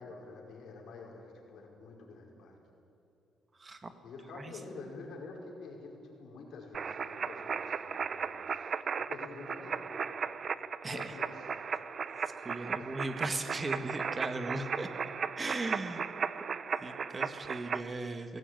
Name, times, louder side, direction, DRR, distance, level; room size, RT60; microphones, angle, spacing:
voice 1, 0.0-2.5 4.0-8.7 9.0-10.4 10.8-11.4 12.8-12.9, left 3 dB, 70° left, -1 dB, 5.1 m, -48 dB
voice 2, 3.6-3.9 4.3-4.5 10.8-11.2 12.2-14.9 15.4-16.0 16.8-18.4, right 2 dB, 30° right, 8 dB, 1.9 m, -38 dB
sound 1, 6.7-17.8, right 6 dB, 50° right, 0.7 m, -36 dB
19.0 x 15.5 x 9.3 m, 2.8 s
cardioid pair, 90°, 0 cm